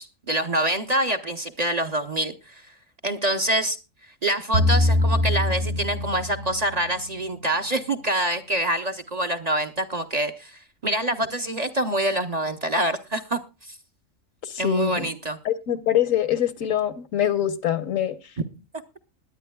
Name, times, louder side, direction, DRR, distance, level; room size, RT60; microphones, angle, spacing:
voice 1, 0.0-2.6 3.0-3.8 4.2-13.8 14.6-15.4, right 1 dB, 35° right, 0.8 m, -26 dB
sound 1, 4.5-6.9, left 1 dB, 75° right, 6.5 m, -22 dB
voice 2, 14.4-15.1 15.4-18.2, left 10 dB, 80° left, 1.4 m, -24 dB
21.0 x 10.0 x 2.3 m
omnidirectional pair, 1.4 m